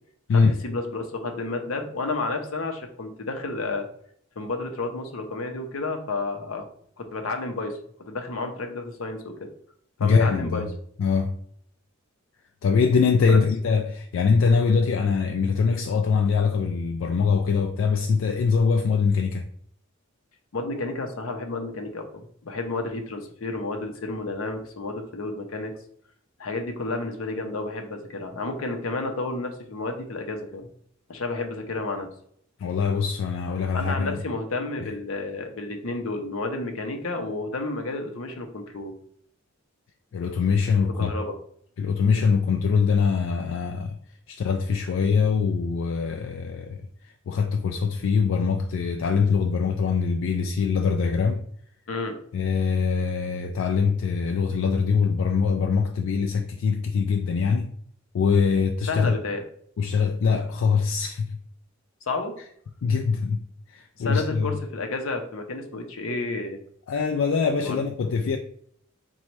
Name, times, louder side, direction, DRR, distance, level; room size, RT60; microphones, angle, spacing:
voice 1, 0.3-3.9 4.4-6.7 7.0-9.5 10.0-10.7 13.2-13.4 20.5-25.7 26.4-30.7 31.1-32.1 33.7-38.9 41.0-41.4 51.9-52.2 58.9-59.4 62.1-62.3 64.0-66.6 67.6-67.9, left 3 dB, 80° left, 0.7 m, -31 dB
voice 2, 10.0-10.6 11.0-11.3 12.6-19.5 32.6-34.2 34.8-34.9 40.1-41.1 41.8-44.0 44.3-46.8 47.3-51.4 52.3-57.7 58.1-59.1 59.8-61.4 62.8-63.4 63.7-64.5 66.9-68.4, left 5 dB, 65° left, 0.3 m, -23 dB
4.0 x 2.3 x 4.5 m
head